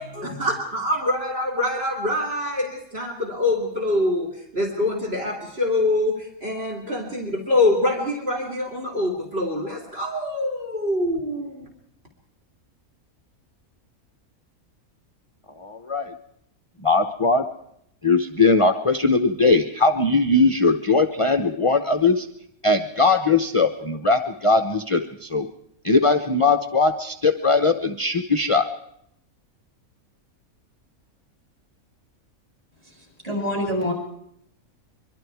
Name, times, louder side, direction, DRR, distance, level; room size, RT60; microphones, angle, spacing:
voice 1, 0.0-4.3 4.5-11.6, left 2 dB, 45° right, 1 dB, 3.4 m, -25 dB
voice 2, 15.6-16.1 16.8-17.4 18.0-22.3 22.6-25.5 25.8-28.7, left 3 dB, 25° left, 8 dB, 0.8 m, -20 dB
voice 3, 32.8-33.9, equal, 25° right, 2 dB, 7.7 m, -27 dB
24.5 x 23.0 x 4.7 m, 0.72 s
omnidirectional pair, 1.5 m